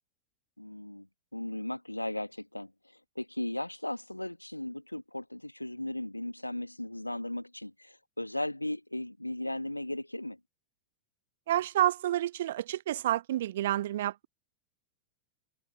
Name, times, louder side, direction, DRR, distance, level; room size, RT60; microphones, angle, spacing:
voice 1, 0.6-1.1 1.3-2.7 3.1-10.4, left 1 dB, 85° left, 1.8 m, -36 dB
voice 2, 11.5-14.3, right 13 dB, 60° right, 0.3 m, -29 dB
figure-of-eight pair, 90°, 0 cm